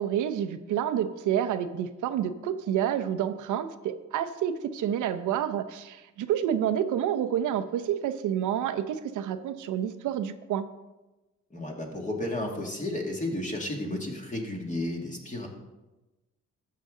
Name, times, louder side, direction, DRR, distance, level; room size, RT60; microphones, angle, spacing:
voice 1, 0.0-10.7, right 10 dB, 80° right, 10 dB, 0.7 m, -29 dB
voice 2, 11.5-15.5, left 1 dB, 25° left, 0 dB, 2.2 m, -32 dB
13.0 x 6.8 x 3.8 m, 1.1 s
cardioid pair, 90°, 30 cm